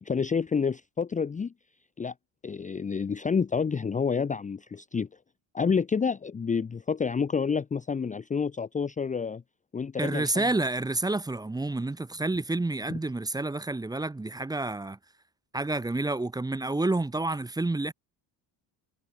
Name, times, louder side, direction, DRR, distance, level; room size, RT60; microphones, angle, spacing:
voice 1, 0.0-1.5 2.0-2.1 2.4-5.1 5.5-9.4 9.7-10.5 12.9-13.0, left 5 dB, 15° left, 0.7 m, -29 dB
voice 2, 10.0-15.0 15.5-17.9, right 2 dB, 10° right, 1.1 m, -29 dB
cardioid pair, 170°, 45 cm